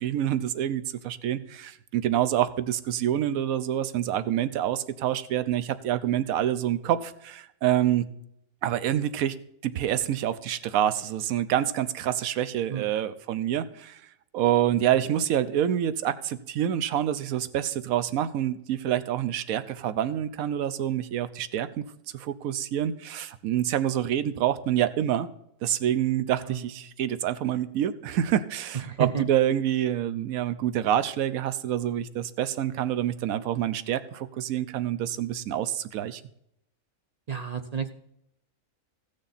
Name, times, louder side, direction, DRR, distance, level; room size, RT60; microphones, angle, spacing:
voice 1, 0.0-8.1 8.6-9.4 9.6-14.0 14.3-21.8 22.1-25.3 25.6-36.2, right 11 dB, 80° right, 14 dB, 1.1 m, -27 dB
voice 2, 28.7-29.2 37.3-37.9, right 7 dB, 50° right, 9 dB, 0.4 m, -31 dB
15.0 x 6.6 x 4.1 m, 0.76 s
omnidirectional pair, 1.5 m